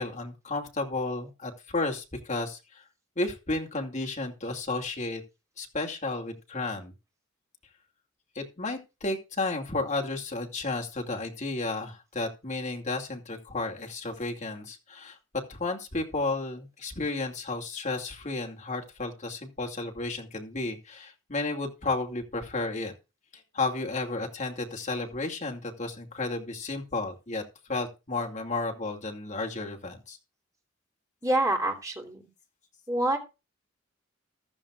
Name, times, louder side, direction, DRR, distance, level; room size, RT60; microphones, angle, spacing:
voice 1, 0.0-2.6 3.2-5.2 5.6-6.9 8.3-15.2 15.5-22.9 23.5-27.4 27.7-30.2, left 2 dB, 35° left, 0 dB, 2.5 m, -32 dB
voice 2, 31.2-32.3 32.9-33.2, right 1 dB, 15° right, 1 dB, 3.2 m, -26 dB
14.5 x 13.0 x 2.5 m, 0.28 s
head